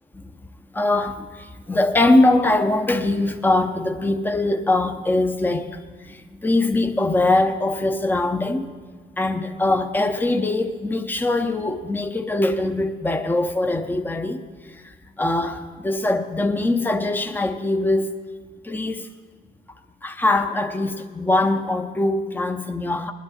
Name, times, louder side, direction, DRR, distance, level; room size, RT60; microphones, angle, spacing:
voice 1, 0.7-8.7 9.2-18.1 18.6-19.1 20.0-23.1, left 2 dB, 10° left, 0.7 m, -22 dB
19.5 x 10.5 x 4.2 m
cardioid pair, 95°, 20 cm